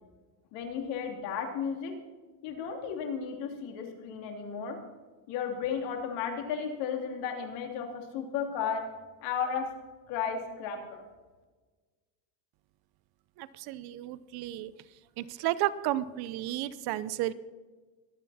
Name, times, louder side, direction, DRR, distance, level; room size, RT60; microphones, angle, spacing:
voice 1, 0.5-1.9 2.4-4.8 5.3-8.8 9.2-9.7 10.1-11.0, left 7 dB, 70° left, 3 dB, 3.2 m, -34 dB
voice 2, 13.4-14.7 15.2-17.3, right 14 dB, 55° right, 16 dB, 0.8 m, -32 dB
23.5 x 9.1 x 4.3 m, 1.3 s
cardioid pair, 140°, 45 cm